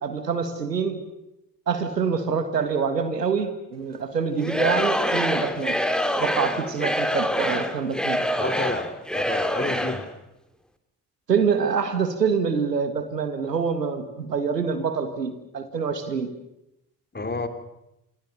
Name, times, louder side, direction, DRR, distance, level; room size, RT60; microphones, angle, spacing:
voice 1, 0.0-1.0 1.7-5.8 6.2-8.2 11.3-16.3, right 6 dB, 85° right, 9 dB, 1.8 m, -26 dB
Singing / Crowd, 4.4-10.1, equal, ahead, 2.7 m, -26 dB
voice 2, 8.4-10.1 17.1-17.5, left 3 dB, 20° left, 8 dB, 3.4 m, -30 dB
27.5 x 27.0 x 6.8 m, 0.89 s
figure-of-eight pair, 45°, 47 cm